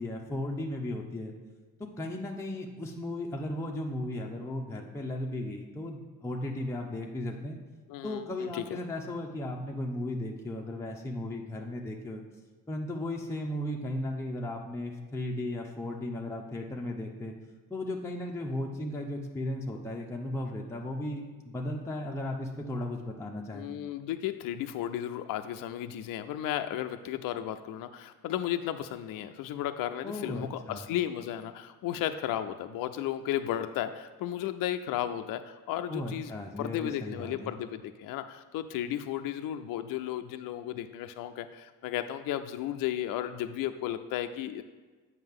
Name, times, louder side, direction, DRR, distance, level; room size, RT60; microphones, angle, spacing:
voice 1, 0.0-1.3 2.0-7.6 8.0-12.2 12.7-17.3 17.7-23.7 30.0-30.8 35.9-37.5, left 1 dB, 5° left, 0 dB, 0.7 m, -36 dB
voice 2, 7.9-8.8 23.5-36.3 36.6-44.6, left 11 dB, 60° left, 8 dB, 0.5 m, -34 dB
7.7 x 5.7 x 3.6 m, 1.3 s
supercardioid pair, 80°, 39 cm